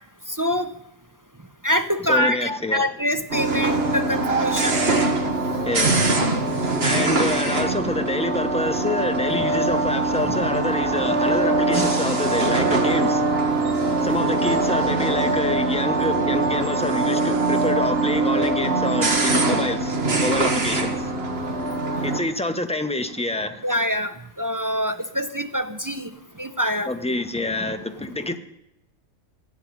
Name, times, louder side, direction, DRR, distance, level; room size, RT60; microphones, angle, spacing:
voice 1, 0.3-0.7 1.6-4.8 23.6-26.1 26.4-26.9, equal, 20° right, 0.6 m, -25 dB
voice 2, 2.0-2.9 5.6-6.2 6.8-13.2 14.0-21.1 22.0-23.6 26.9-28.4, left 2 dB, 5° left, 1.0 m, -27 dB
sound 1, 3.3-22.2, right 2 dB, 45° right, 1.9 m, -22 dB
16.0 x 8.1 x 9.8 m
omnidirectional pair, 1.4 m